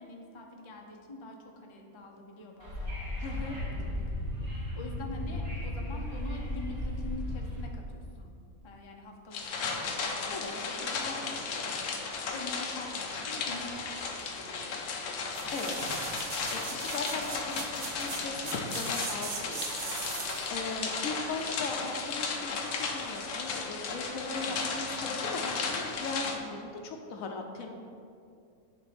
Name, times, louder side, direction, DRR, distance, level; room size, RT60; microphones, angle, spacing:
voice 1, 0.0-4.0 4.5-8.3 8.6-11.2 12.3-15.0, left 2 dB, 30° left, 1 dB, 0.6 m, -45 dB
Wind / Subway metro underground, 2.6-7.6, left 1 dB, 50° right, 2.2 m, -35 dB
voice 2, 3.2-3.6 10.3-10.5 10.9-11.4 11.7-11.8 15.5-16.0 16.3-27.7, left 3 dB, 70° left, 3 dB, 1.1 m, -39 dB
sound 1, 9.3-26.4, left 4 dB, 85° left, 1.3 m, -35 dB
sound 2, 15.3-20.6 21.0-21.1, right 4 dB, 70° right, 1.4 m, -39 dB
8.8 x 3.8 x 5.9 m, 2.4 s
omnidirectional pair, 1.5 m